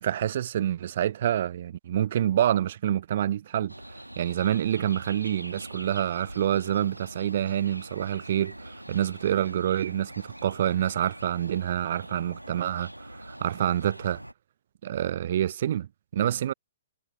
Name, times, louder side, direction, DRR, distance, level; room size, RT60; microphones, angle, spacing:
voice 1, 0.0-3.7 4.2-14.2 14.8-16.5, right 11 dB, 50° right, 0.4 m, -27 dB
sound 1, 3.7-14.3, right 1 dB, 90° right, 1.8 m, -43 dB
figure-of-eight pair, 120°, 0 cm